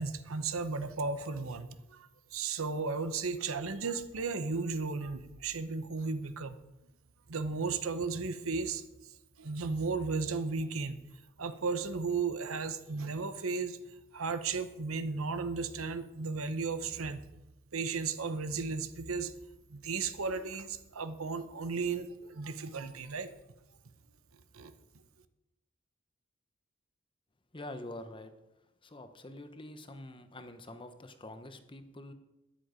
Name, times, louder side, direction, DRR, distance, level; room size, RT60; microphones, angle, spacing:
voice 1, 0.0-6.6 7.3-9.1 9.4-11.0 11.4-13.8 14.1-17.2 17.7-19.3 19.7-23.3 24.5-24.7, right 4 dB, 85° right, 11 dB, 0.9 m, -35 dB
voice 2, 27.5-28.3 28.8-32.1, left 1 dB, 25° left, 9 dB, 0.9 m, -46 dB
13.0 x 10.5 x 5.1 m, 0.94 s
head